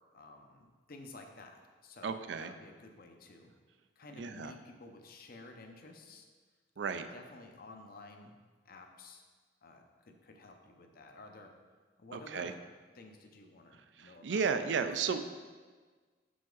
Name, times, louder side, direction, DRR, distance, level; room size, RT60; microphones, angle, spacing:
voice 1, 0.1-3.5 4.0-6.3 6.8-8.4 8.6-9.2 9.6-11.5 12.0-12.6 12.9-14.7, left 2 dB, 55° left, 4 dB, 0.7 m, -53 dB
voice 2, 2.0-2.5 4.2-4.5 6.8-7.0 12.1-12.5 14.0-15.2, right 5 dB, 80° right, 9 dB, 0.4 m, -33 dB
5.8 x 5.1 x 3.9 m, 1.4 s
head